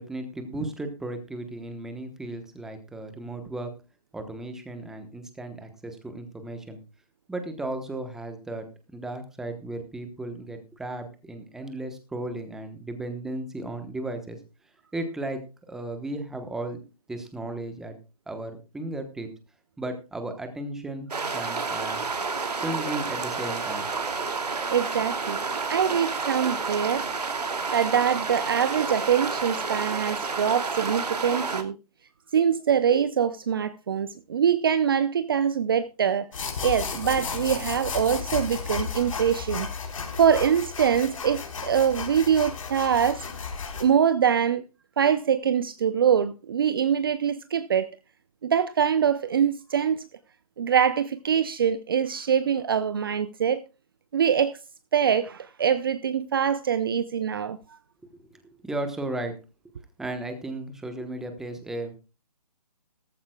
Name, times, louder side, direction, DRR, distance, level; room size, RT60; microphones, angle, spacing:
voice 1, 0.0-3.7 4.1-6.8 7.3-14.4 14.9-15.4 15.7-16.8 17.1-18.0 18.3-19.3 19.8-22.0 22.6-23.9 58.1-58.3 58.6-59.4 60.0-62.0, right 2 dB, ahead, 1.1 m, -35 dB
sound 1, 21.1-31.6, right 4 dB, 75° right, 2.6 m, -30 dB
voice 2, 24.7-27.1 27.7-31.8 32.3-36.3 36.6-39.7 40.2-43.3 43.8-44.6 45.0-47.9 48.4-50.0 50.6-53.6 54.1-54.6 54.9-57.6, right 8 dB, 35° right, 0.6 m, -24 dB
sound 2, 36.3-43.8, left 5 dB, 55° left, 4.2 m, -33 dB
17.0 x 14.5 x 2.3 m
hypercardioid pair, 160°, 21 cm